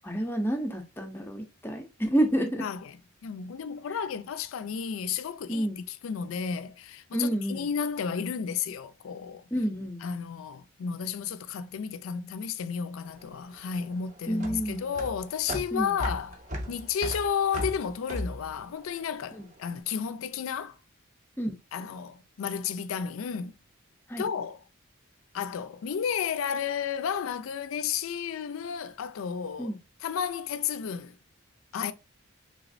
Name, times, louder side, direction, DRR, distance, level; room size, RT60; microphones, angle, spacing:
voice 1, 0.0-2.6 5.5-5.8 7.1-7.6 9.5-10.0 14.3-14.9 15.7-15.9 21.4-21.5 24.1-24.2 29.6-29.8, right 1 dB, 10° left, 0.5 m, -29 dB
voice 2, 2.6-2.9 3.2-9.5 10.0-16.4 16.7-20.8 21.7-23.6 24.2-24.6 25.3-29.7 30.0-31.2 31.7-31.9, left 7 dB, 75° left, 0.4 m, -32 dB
sound 1, 13.1-19.6, equal, 35° right, 0.6 m, -37 dB
3.4 x 3.0 x 2.5 m
head